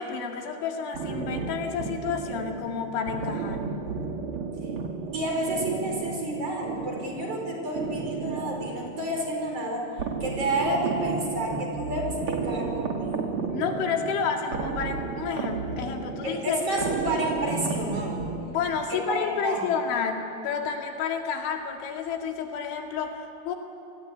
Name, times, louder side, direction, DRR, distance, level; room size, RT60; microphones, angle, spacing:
voice 1, 0.0-3.7 13.5-16.6 18.5-23.6, left 6 dB, 85° left, 3 dB, 4.6 m, -30 dB
sound 1, 0.9-19.0, right 4 dB, 65° right, 1.3 m, -33 dB
voice 2, 5.1-9.9 10.2-13.3 16.2-18.1 18.9-19.6, right 1 dB, 30° right, 0 dB, 5.6 m, -30 dB
27.0 x 21.5 x 9.9 m, 2.6 s
omnidirectional pair, 5.3 m